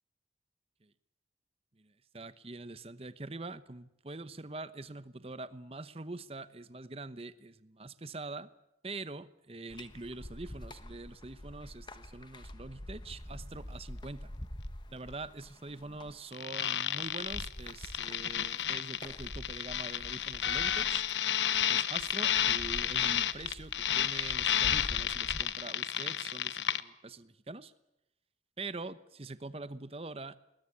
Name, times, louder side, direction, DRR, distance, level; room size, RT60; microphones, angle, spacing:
voice 1, 1.8-8.5 8.8-14.3 14.9-21.0 21.5-27.7 28.6-30.4, right 2 dB, 35° right, 0.9 m, -44 dB
sound 1, 9.7-25.4, left 1 dB, 25° left, 1.2 m, -46 dB
sound 2, 16.3-26.8, left 10 dB, 85° left, 1.0 m, -31 dB
20.5 x 20.0 x 9.8 m
head